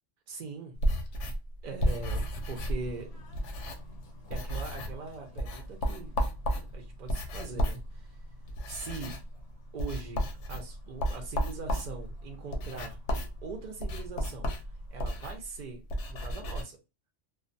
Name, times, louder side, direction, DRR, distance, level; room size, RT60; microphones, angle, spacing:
voice 1, 0.3-0.7 1.6-3.2 4.3-6.2 6.7-8.2 8.7-9.2 9.7-13.0 13.4-14.7 14.9-15.8 16.1-16.8, right 4 dB, 55° right, 0.5 m, -41 dB
sound 1, 0.7-4.0 4.3-5.1 5.4-16.6, equal, 80° left, 0.9 m, -33 dB
Bird / Train, 1.8-15.2, left 2 dB, 50° left, 0.6 m, -55 dB
2.4 x 2.1 x 2.5 m
omnidirectional pair, 1.2 m